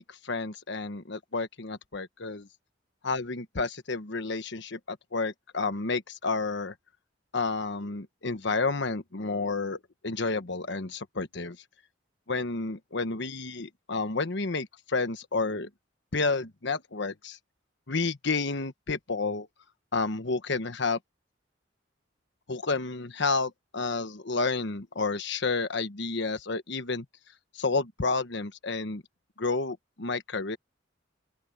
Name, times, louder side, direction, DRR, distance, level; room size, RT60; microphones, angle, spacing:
voice 1, 0.0-2.5 3.0-6.7 7.3-11.6 12.3-15.7 16.1-17.4 17.9-19.5 19.9-21.0 22.5-27.0 27.5-29.0 29.4-30.6, left 3 dB, 65° left, 1.3 m, -30 dB
open air
head